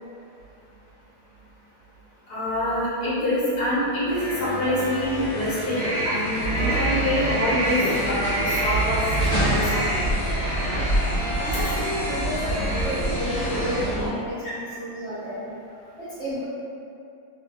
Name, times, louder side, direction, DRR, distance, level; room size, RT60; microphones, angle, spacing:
voice 1, 2.3-10.0 14.4-14.5, left 1 dB, 60° left, -11 dB, 1.3 m, -26 dB
sound 1, 4.1-14.0, left 1 dB, 80° left, 1.3 m, -34 dB
sound 2, 5.8-13.9, right 1 dB, 60° right, 0.9 m, -29 dB
sound 3, 6.4-14.1, right 1 dB, 30° left, 1.2 m, -27 dB
voice 2, 11.4-15.5 16.0-16.5, equal, 80° right, -13 dB, 0.6 m, -31 dB
3.0 x 2.6 x 2.2 m, 2.5 s
omnidirectional pair, 2.1 m